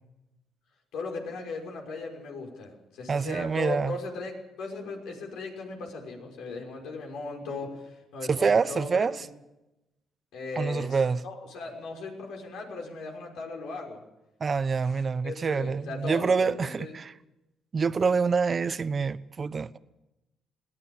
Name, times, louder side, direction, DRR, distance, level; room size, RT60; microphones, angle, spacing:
voice 1, 0.9-9.1 10.3-14.0 14.8-14.9 15.2-16.9, left 3 dB, 85° left, 5.8 m, -37 dB
voice 2, 3.1-3.9 8.3-9.3 10.6-11.2 14.4-17.1 17.7-19.8, right 5 dB, 40° right, 0.9 m, -26 dB
22.0 x 18.0 x 7.1 m
cardioid pair, 90°, 0 cm